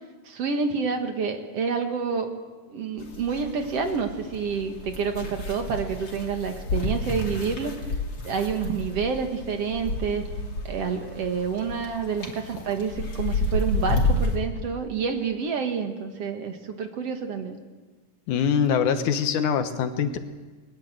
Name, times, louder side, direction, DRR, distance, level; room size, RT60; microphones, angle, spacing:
voice 1, 0.3-2.3 2.7-7.7 8.2-10.2 10.6-17.6, right 5 dB, 55° right, 5 dB, 2.6 m, -28 dB
sound 1, 3.0-14.4, left 2 dB, 50° left, 3.7 m, -30 dB
voice 2, 18.3-20.2, left 7 dB, 85° left, 8 dB, 2.8 m, -23 dB
21.0 x 20.5 x 7.9 m, 1.3 s
omnidirectional pair, 3.4 m